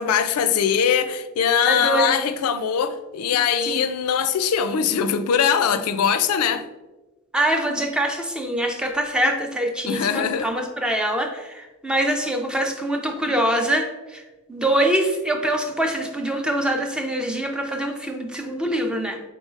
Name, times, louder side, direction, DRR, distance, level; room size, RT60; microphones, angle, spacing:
voice 1, 0.0-6.6 9.9-10.5, left 7 dB, 85° left, 0.4 m, -21 dB
voice 2, 1.7-2.2 3.7-3.9 7.3-14.2 14.5-19.2, right 1 dB, 5° right, 0.4 m, -24 dB
5.2 x 3.8 x 2.5 m
head